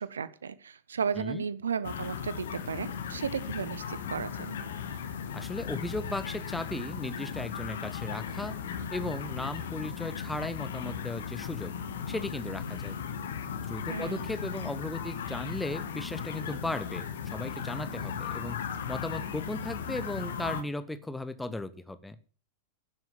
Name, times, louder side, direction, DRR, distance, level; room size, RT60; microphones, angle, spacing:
voice 1, 0.0-4.6 13.9-14.4, right 6 dB, 70° right, 16 dB, 0.9 m, -34 dB
sound 1, 1.8-20.6, left 7 dB, 60° left, 1.5 m, -37 dB
voice 2, 5.3-8.6 8.9-11.7 12.1-12.9 13.7-18.6 18.9-22.1, left 2 dB, 5° left, 12 dB, 1.1 m, -36 dB
11.0 x 7.8 x 7.2 m, 0.40 s
figure-of-eight pair, 90°, 0 cm